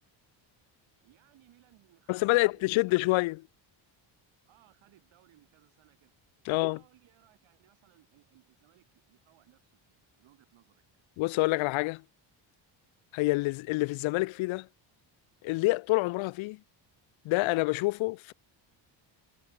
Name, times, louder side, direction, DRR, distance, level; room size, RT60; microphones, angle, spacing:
voice 1, 1.0-3.2 4.5-6.1 6.5-10.8, right 15 dB, 80° right, 6.0 m, -64 dB
voice 2, 2.1-3.4 6.5-6.8 11.2-12.0 13.1-14.7 15.4-16.6 17.2-18.3, left 22 dB, 80° left, 0.5 m, -27 dB
cardioid pair, 145°, 46 cm